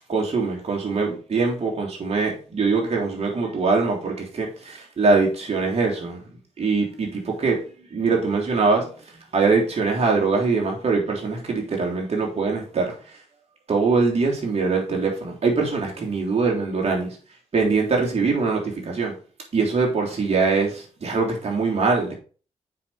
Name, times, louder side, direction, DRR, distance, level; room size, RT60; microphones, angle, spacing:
voice 1, 0.1-6.2 6.6-7.7 7.9-8.9 9.3-12.9 13.7-17.2 17.5-19.1 19.5-22.1, right 4 dB, 50° right, 3.4 m, -22 dB
7.5 x 5.9 x 4.4 m
supercardioid pair, 45°, 14 cm